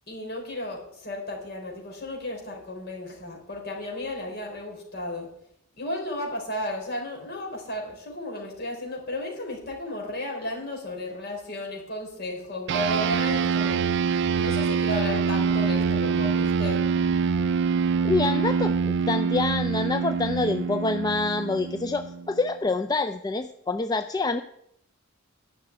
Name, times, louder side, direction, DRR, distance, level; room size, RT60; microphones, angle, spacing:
voice 1, 0.1-5.3 5.8-13.8 14.4-16.8, left 1 dB, 50° left, 0 dB, 4.0 m, -34 dB
sound 1, 12.7-22.4, right 6 dB, 55° right, 0.4 m, -25 dB
voice 2, 18.0-24.4, left 3 dB, 20° left, 8 dB, 0.4 m, -26 dB
11.5 x 5.9 x 9.0 m, 0.75 s
head